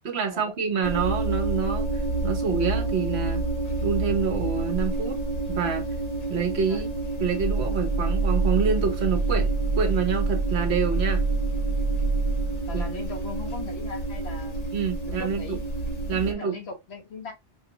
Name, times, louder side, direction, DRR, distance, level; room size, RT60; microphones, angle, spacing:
voice 1, 0.0-3.4 3.8-5.2 5.5-5.9 6.3-6.9 7.2-9.5 9.8-11.2 12.7-12.8 14.7-15.6 16.1-16.6, right 6 dB, 65° right, 1.2 m, -27 dB
sound 1, 0.8-16.3, right 2 dB, 40° left, 0.8 m, -30 dB
sound 2, 7.4-12.8, right 3 dB, 25° right, 0.4 m, -26 dB
voice 2, 12.7-14.6 15.0-15.6 16.1-17.3, left 4 dB, 65° left, 1.4 m, -39 dB
5.1 x 2.4 x 2.9 m
omnidirectional pair, 1.2 m